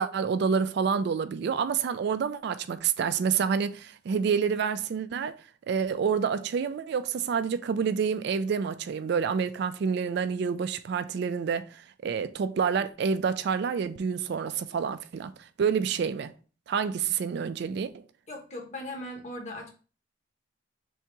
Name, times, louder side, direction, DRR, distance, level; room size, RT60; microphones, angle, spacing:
voice 1, 0.0-5.4 5.7-16.3 16.7-17.9, right 6 dB, 60° right, 0.3 m, -28 dB
voice 2, 18.3-19.7, left 1 dB, 35° left, 1.1 m, -38 dB
3.5 x 2.8 x 4.5 m
head